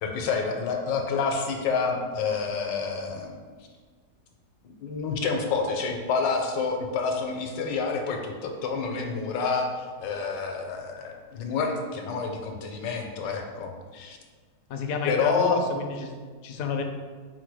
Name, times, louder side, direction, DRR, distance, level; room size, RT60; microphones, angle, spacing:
voice 1, 0.0-3.4 4.6-14.2 15.0-15.6, left 5 dB, 85° left, 3 dB, 1.3 m, -28 dB
voice 2, 14.7-16.2 16.4-16.8, left 4 dB, 70° left, 3 dB, 0.8 m, -29 dB
4.5 x 2.2 x 4.6 m, 1.5 s
omnidirectional pair, 1.9 m